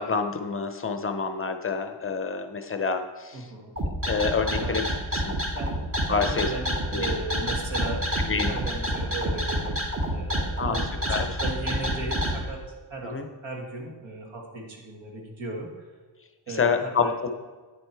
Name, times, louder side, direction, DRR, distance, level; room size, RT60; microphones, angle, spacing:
voice 1, 0.0-3.5 4.1-5.4 6.1-6.5 6.9-7.1 8.2-8.5 10.6-10.8 11.1-11.4 13.1-13.3 16.5-17.3, left 5 dB, 30° left, 7 dB, 0.6 m, -28 dB
voice 2, 3.3-3.7 4.6-4.8 5.5-5.7 6.1-8.1 8.5-9.8 10.1-10.8 11.2-12.6 12.9-15.7 16.5-17.1, right 2 dB, 85° right, -1 dB, 2.3 m, -36 dB
sound 1, 3.8-12.4, equal, 30° right, 1.4 m, -27 dB
9.7 x 7.7 x 4.6 m, 1.4 s
wide cardioid pair, 160°, 45 cm